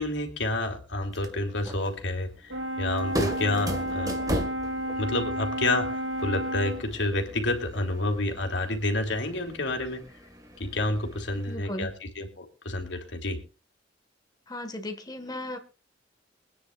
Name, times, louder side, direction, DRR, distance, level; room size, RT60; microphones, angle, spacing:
voice 1, 0.0-4.2 5.0-5.9 6.2-10.0 10.6-11.9 12.2-13.4, left 2 dB, 75° left, 4 dB, 3.1 m, -29 dB
sound 1, 1.0-11.6, right 1 dB, 20° right, 1.8 m, -38 dB
Brass instrument, 2.5-6.9, equal, 90° right, 1.1 m, -31 dB
voice 2, 11.5-11.9 14.5-15.6, left 1 dB, 20° left, 6 dB, 1.7 m, -36 dB
24.5 x 9.9 x 2.5 m, 0.33 s
head